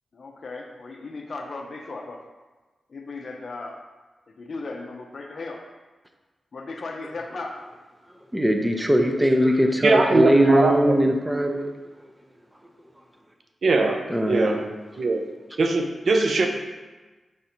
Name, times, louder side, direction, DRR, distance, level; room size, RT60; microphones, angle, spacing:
voice 1, 0.1-2.2 2.9-3.8 4.4-5.6 6.5-7.6, left 3 dB, 60° left, 2 dB, 0.5 m, -36 dB
voice 2, 8.3-11.7 14.1-14.6, equal, 10° right, 4 dB, 0.5 m, -20 dB
voice 3, 9.8-11.0 13.6-14.6 15.0-15.3 15.6-16.5, right 3 dB, 65° right, 3 dB, 0.5 m, -21 dB
4.8 x 2.6 x 4.2 m, 1.3 s
wide cardioid pair, 100°, 0 cm